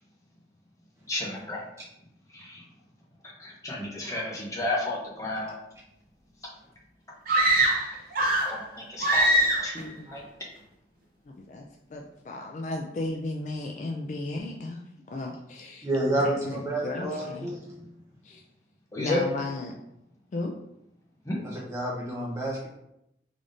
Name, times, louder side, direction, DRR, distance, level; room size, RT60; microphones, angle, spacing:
voice 1, 1.1-1.7 2.3-2.7 3.2-5.6 8.5-10.2 18.9-19.2 21.2-21.4, left 2 dB, 20° left, -3 dB, 0.7 m, -32 dB
sound 1, 7.3-8.6 9.0-9.8, right 1 dB, 50° right, 0.6 m, -22 dB
voice 2, 11.4-15.9 16.2-17.5 18.2-18.4 19.0-19.7 20.3-20.5, left 2 dB, 40° left, 1 dB, 0.3 m, -35 dB
voice 3, 15.8-17.7 21.7-22.7, right 1 dB, 15° right, -4 dB, 0.8 m, -29 dB
3.7 x 3.4 x 2.5 m, 0.82 s
head